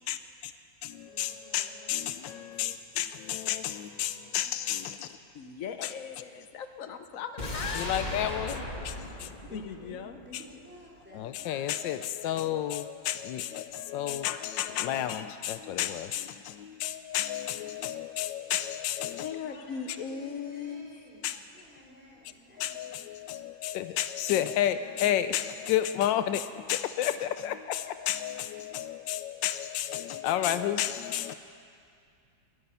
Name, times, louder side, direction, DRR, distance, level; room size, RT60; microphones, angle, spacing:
voice 1, 0.1-0.5 0.8-5.2 5.8-5.9 7.8-9.3 10.3-10.4 11.1-19.4 21.2-21.4 22.6-31.3, left 11 dB, 85° left, 11 dB, 1.3 m, -31 dB
voice 2, 1.0-2.4 4.0-4.5 7.8-7.9 8.3-8.7 9.4-11.9 19.4-22.9, equal, 5° right, -5 dB, 3.5 m, -52 dB
voice 3, 5.3-8.0 9.5-10.2 19.2-20.9, left 7 dB, 60° left, 8 dB, 1.0 m, -38 dB
sound 1, 7.4-10.5 10.8-10.9, left 1 dB, 25° left, 1.6 m, -37 dB
20.0 x 10.5 x 5.5 m, 2.3 s
omnidirectional pair, 2.0 m